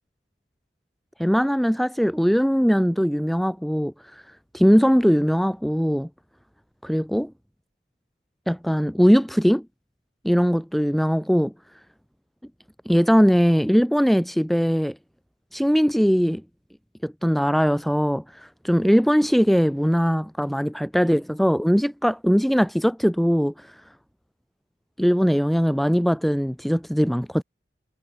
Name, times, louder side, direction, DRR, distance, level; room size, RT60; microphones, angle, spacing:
voice 1, 1.2-3.9 4.5-6.1 6.8-7.3 8.5-9.6 10.2-11.5 12.8-15.0 15.5-16.4 17.0-23.7 25.0-27.4, equal, ahead, 1.3 m, -20 dB
head